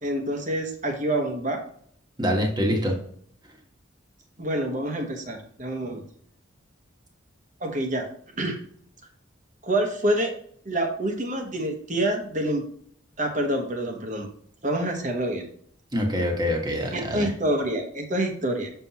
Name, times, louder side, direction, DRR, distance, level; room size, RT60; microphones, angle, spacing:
voice 1, 0.0-1.6 4.4-6.0 7.6-8.1 8.4-8.6 9.6-10.3 10.6-12.6 13.2-14.3 14.6-15.5 16.9-18.7, right 1 dB, 40° right, 3 dB, 1.1 m, -27 dB
voice 2, 2.2-3.0 15.9-17.3, equal, 20° right, 1 dB, 1.4 m, -25 dB
6.8 x 5.6 x 2.9 m, 0.62 s
head